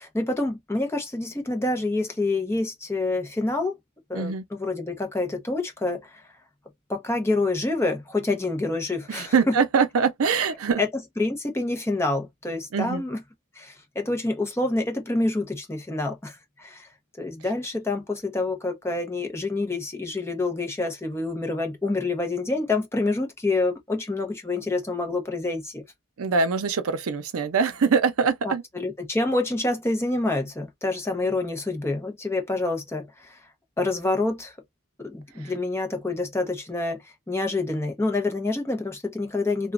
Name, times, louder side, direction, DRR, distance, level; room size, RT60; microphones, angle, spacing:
voice 1, 0.0-3.8 4.1-6.2 6.9-9.5 10.8-13.2 13.6-16.9 17.2-25.8 28.4-33.4 33.8-34.5 35.0-39.7, left 2 dB, 10° left, 0.6 m, -27 dB
voice 2, 4.1-4.4 9.1-10.8 12.7-13.0 26.2-28.6 35.4-35.5, right 5 dB, 75° right, 0.5 m, -23 dB
2.9 x 2.2 x 2.4 m
head